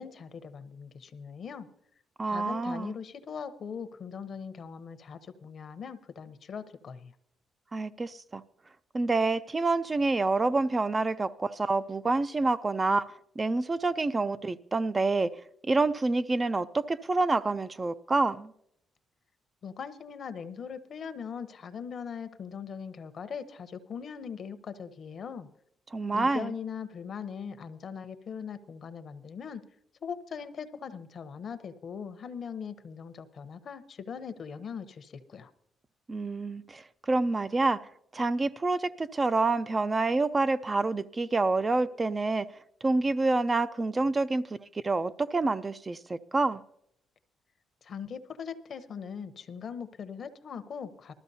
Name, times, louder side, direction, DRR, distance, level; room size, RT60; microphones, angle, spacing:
voice 1, 0.0-1.7 2.2-7.1 19.6-25.5 26.1-29.6 30.0-35.5 47.8-51.1, left 6 dB, 55° left, 0.8 m, -40 dB
voice 2, 2.2-2.9 7.7-8.4 8.9-13.1 13.4-15.3 15.7-18.5 25.9-26.5 36.1-37.8 38.1-42.5 42.8-44.4 44.7-46.6, right 3 dB, 25° right, 0.4 m, -27 dB
19.5 x 13.5 x 2.7 m
cardioid pair, 90°, 0 cm